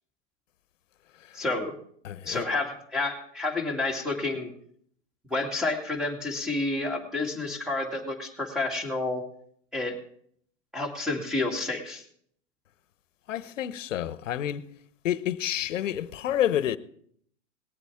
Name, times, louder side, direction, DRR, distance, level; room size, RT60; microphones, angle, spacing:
voice 1, 1.3-1.7 2.2-4.5 5.3-9.2 9.7-10.0 10.7-12.0, left 2 dB, ahead, 2.3 m, -29 dB
voice 2, 2.0-2.4 13.3-14.6 15.0-16.8, left 11 dB, 80° left, 1.0 m, -29 dB
19.5 x 8.4 x 3.6 m
hypercardioid pair, 135°, 38 cm